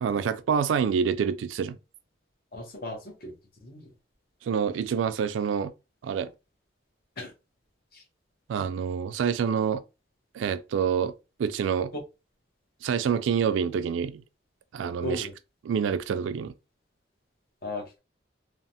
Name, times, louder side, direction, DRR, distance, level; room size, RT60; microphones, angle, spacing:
voice 1, 0.0-1.8 4.4-5.7 6.0-6.3 8.5-9.8 10.3-11.1 11.4-11.9 12.8-14.2 14.7-15.3 15.6-16.5, right 7 dB, 85° right, 0.3 m, -27 dB
voice 2, 2.5-3.3 3.6-3.9 7.2-7.3 7.9-8.0 15.0-15.3 17.6-18.0, left 2 dB, 50° left, 0.8 m, -36 dB
3.1 x 2.0 x 2.7 m
head